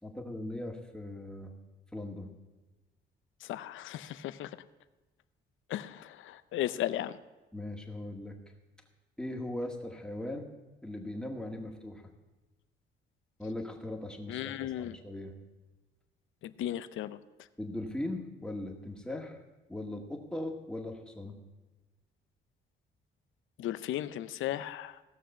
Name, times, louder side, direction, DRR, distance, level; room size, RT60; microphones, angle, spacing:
voice 1, 0.0-1.5 1.9-2.3 7.5-8.3 9.2-10.5 10.8-12.0 13.4-15.3 17.6-19.4 19.7-21.4, left 1 dB, 5° left, 2 dB, 2.0 m, -39 dB
voice 2, 3.5-4.5 5.7-7.2 14.3-14.9 16.6-17.2 23.6-25.0, left 12 dB, 80° left, 14 dB, 0.6 m, -35 dB
16.5 x 6.3 x 6.8 m, 1.1 s
cardioid pair, 90°, 20 cm